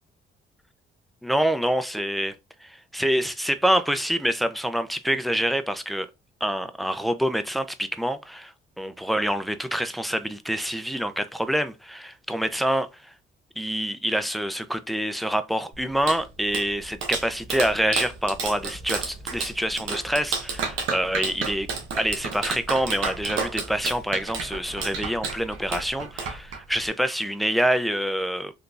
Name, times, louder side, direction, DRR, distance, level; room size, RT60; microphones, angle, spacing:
voice 1, 1.2-2.3 2.6-6.1 6.4-12.9 13.6-21.7 21.9-28.5, equal, ahead, 0.4 m, -26 dB
Clapping, 15.7-26.9, right 5 dB, 80° right, 0.9 m, -32 dB
3.8 x 2.7 x 2.4 m
cardioid pair, 90°, 20 cm